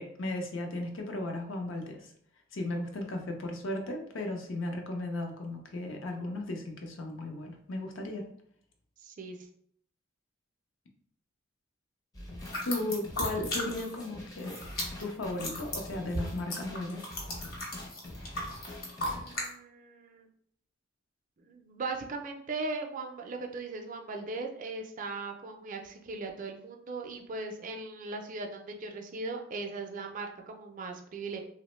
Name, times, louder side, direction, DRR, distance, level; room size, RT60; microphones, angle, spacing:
voice 1, 0.0-2.1 2.5-8.2 12.6-14.6 15.0-17.0, left 1 dB, 70° left, 3 dB, 0.5 m, -35 dB
voice 2, 9.0-9.4 19.0-20.3 21.4-31.4, right 3 dB, 40° right, 3 dB, 0.4 m, -39 dB
sound 1, 12.1-19.3, left 1 dB, 20° left, 0.5 m, -45 dB
sound 2, 12.4-14.1 14.3-19.5, left 1 dB, 50° left, 0.9 m, -36 dB
2.9 x 2.0 x 3.0 m, 0.65 s
head